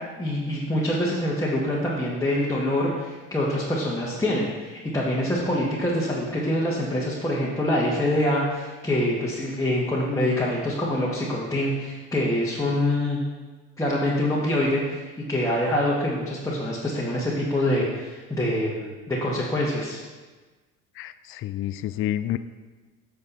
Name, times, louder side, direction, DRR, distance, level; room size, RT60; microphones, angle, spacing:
voice 1, 0.2-13.2 13.8-15.0 15.3-20.0, left 1 dB, 10° left, -6 dB, 1.9 m, -25 dB
voice 2, 21.0-22.4, left 12 dB, 35° left, 12 dB, 0.4 m, -29 dB
9.1 x 6.5 x 4.2 m, 1.3 s
hypercardioid pair, 70°, 38 cm